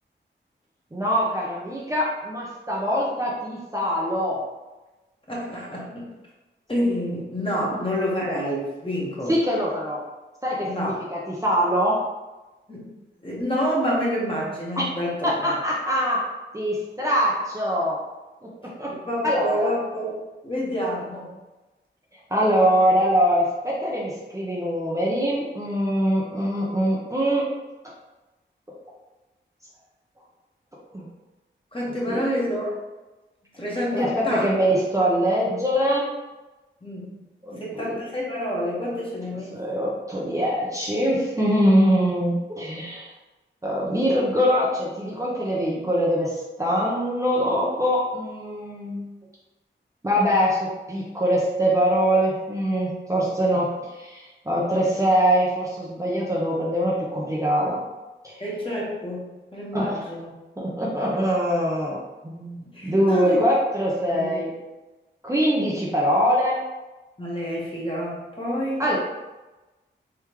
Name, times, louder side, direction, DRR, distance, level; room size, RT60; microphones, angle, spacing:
voice 1, 0.9-4.4 9.3-10.0 10.4-12.0 14.8-14.9 15.2-16.2 16.5-18.0 18.8-18.9 19.2-19.8 22.3-27.5 30.9-31.0 32.1-32.2 33.9-36.1 37.4-37.9 39.5-43.1 43.6-49.1 50.0-57.8 58.2-58.4 59.7-60.0 60.6-64.5 65.2-66.6 68.8-69.0, equal, 15° right, -5 dB, 0.8 m, -23 dB
voice 2, 5.3-6.1 6.7-9.3 10.6-11.0 12.7-12.9 13.2-15.5 18.9-20.1 20.4-21.3 31.7-32.7 33.5-34.5 36.8-37.1 37.6-39.5 39.8-39.9 58.4-60.3 62.7-63.4 64.1-64.3 67.2-68.8, equal, 25° left, -5 dB, 1.3 m, -28 dB
3.6 x 3.1 x 3.1 m, 1.1 s
cardioid pair, 65°, 20 cm